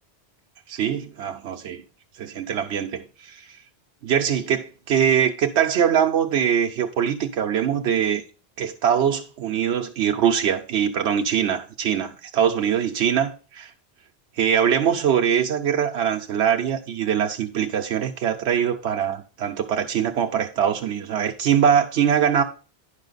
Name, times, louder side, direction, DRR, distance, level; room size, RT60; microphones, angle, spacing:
voice 1, 0.7-1.8 2.2-3.6 4.0-8.2 8.6-13.7 14.3-22.4, right 8 dB, 90° right, 1.0 m, -22 dB
10.5 x 5.7 x 3.9 m
omnidirectional pair, 1.1 m